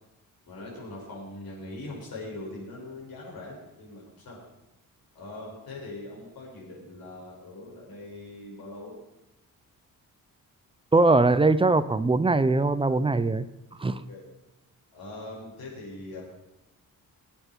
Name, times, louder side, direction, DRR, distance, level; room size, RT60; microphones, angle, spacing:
voice 1, 0.5-4.4 5.1-9.0 13.9-14.2 14.9-16.2, left 2 dB, 85° left, -3 dB, 6.0 m, -41 dB
voice 2, 10.9-13.5 13.8-14.0, right 3 dB, 15° right, 13 dB, 0.4 m, -21 dB
23.0 x 8.9 x 4.5 m, 0.99 s
wide cardioid pair, 170°, 35 cm